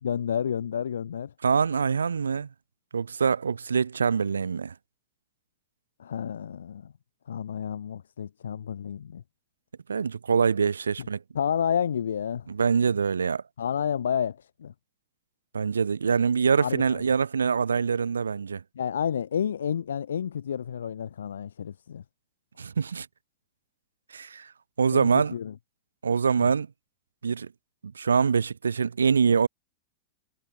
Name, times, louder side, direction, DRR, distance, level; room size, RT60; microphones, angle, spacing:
voice 1, 0.0-1.3 6.0-6.9 7.3-9.2 11.3-12.5 13.6-14.7 16.6-17.0 18.7-22.0 24.9-25.5 26.4-26.5, left 8 dB, 80° left, 1.2 m, -30 dB
voice 2, 1.4-2.5 2.9-4.7 9.9-11.2 12.5-13.4 15.5-18.6 22.6-23.1 24.1-24.5 24.8-25.3 26.0-26.7 27.2-27.5 27.9-29.5, right 6 dB, 85° right, 1.0 m, -24 dB
hypercardioid pair, 100°, 0 cm